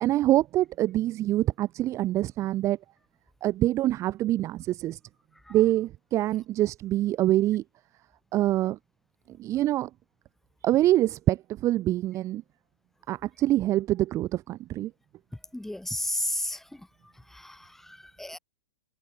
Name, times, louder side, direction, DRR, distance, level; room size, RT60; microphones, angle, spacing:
voice 1, 0.0-2.8 3.4-5.0 5.5-7.6 8.3-8.8 9.3-9.9 10.6-12.4 13.1-14.9, right 14 dB, 25° right, 1.0 m, -25 dB
voice 2, 15.5-16.9 17.3-18.4, left 1 dB, ahead, 7.6 m, -33 dB
figure-of-eight pair, 110°, 13 cm